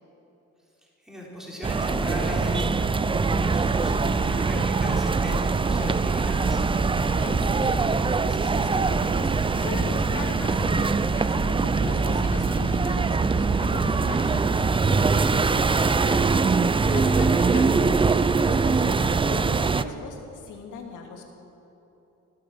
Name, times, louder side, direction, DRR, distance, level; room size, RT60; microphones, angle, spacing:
voice 1, 1.0-6.6 16.9-17.4, equal, ahead, -4 dB, 4.1 m, -37 dB
sound 1, 1.6-19.8, right 4 dB, 15° right, 0.4 m, -23 dB
sound 2, 1.9-18.0, left 7 dB, 45° left, 0.7 m, -40 dB
voice 2, 7.1-16.3 16.6-21.2, left 4 dB, 80° left, 1 dB, 2.7 m, -39 dB
15.5 x 12.5 x 7.1 m, 2.9 s
cardioid pair, 90°, 30 cm